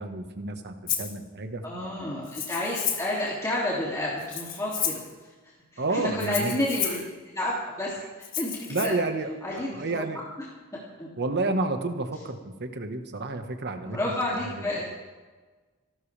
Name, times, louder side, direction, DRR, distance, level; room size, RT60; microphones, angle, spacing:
voice 1, 0.0-2.0 5.8-6.5 6.8-7.0 8.7-10.2 11.2-14.7, right 2 dB, 50° right, 6 dB, 1.6 m, -31 dB
Rattle (instrument), 0.9-1.1 2.2-3.2 4.2-5.1 6.2-7.1 8.2-8.9, left 8 dB, 40° left, 1.9 m, -31 dB
voice 2, 1.6-7.0 7.3-7.9 8.4-8.9 9.4-10.0 11.0-11.1 13.8-14.9, left 1 dB, 15° left, -6 dB, 2.8 m, -30 dB
26.0 x 13.0 x 3.5 m, 1.3 s
head